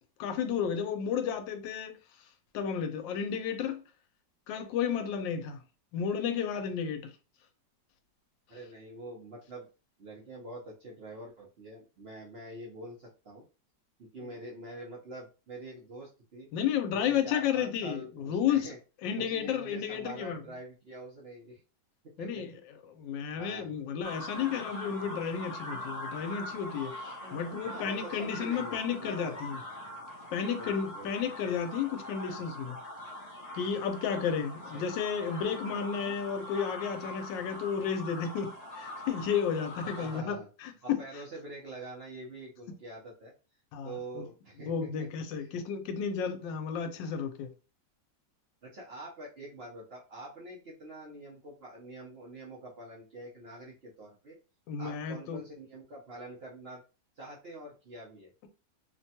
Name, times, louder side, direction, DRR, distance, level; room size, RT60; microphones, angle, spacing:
voice 1, 0.2-1.9 2.5-3.8 4.5-5.6 5.9-7.1 16.5-18.7 19.0-20.4 22.2-22.5 23.0-29.6 30.3-32.8 33.5-41.0 43.7-44.2 44.6-47.5 54.7-55.4, left 7 dB, 85° left, 1.3 m, -32 dB
voice 2, 8.5-9.7 10.0-13.5 14.0-16.5 16.9-18.8 19.2-21.6 22.2-22.4 23.3-23.7 27.6-29.5 30.6-31.3 34.7-34.9 39.8-40.5 40.8-43.3 43.8-45.1 45.3-45.6 48.6-54.4 54.8-56.8 57.2-58.3, right 1 dB, 65° right, 0.6 m, -45 dB
sound 1, 24.0-40.2, left 1 dB, 40° left, 0.5 m, -42 dB
3.2 x 2.2 x 2.7 m
omnidirectional pair, 2.0 m